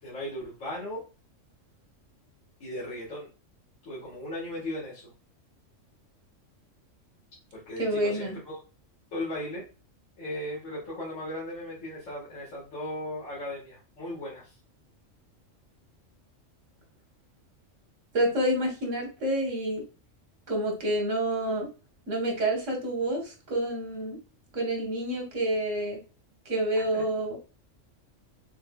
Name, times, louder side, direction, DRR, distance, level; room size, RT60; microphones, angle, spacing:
voice 1, 0.0-1.0 2.6-3.3 3.9-5.1 7.5-8.6 9.1-9.6 10.2-14.5 26.9-27.0, left 1 dB, 70° left, -6 dB, 1.9 m, -37 dB
voice 2, 7.8-8.4 18.1-19.8 20.5-21.7 22.1-24.2 24.5-26.0 26.4-27.4, right 1 dB, 75° right, 2 dB, 1.7 m, -28 dB
6.2 x 2.7 x 2.3 m, 0.33 s
omnidirectional pair, 1.3 m